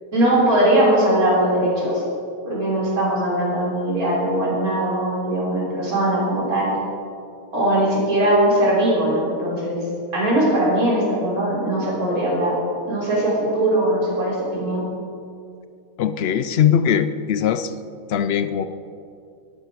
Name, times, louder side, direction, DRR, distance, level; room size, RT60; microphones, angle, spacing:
voice 1, 0.1-2.0 2.5-6.7 7.5-9.8 10.1-12.5 12.9-14.8, right 1 dB, 75° right, -5 dB, 4.2 m, -20 dB
voice 2, 16.0-17.8 18.1-18.7, left 9 dB, 70° left, 12 dB, 0.6 m, -20 dB
13.0 x 11.5 x 4.8 m, 2.5 s
omnidirectional pair, 1.5 m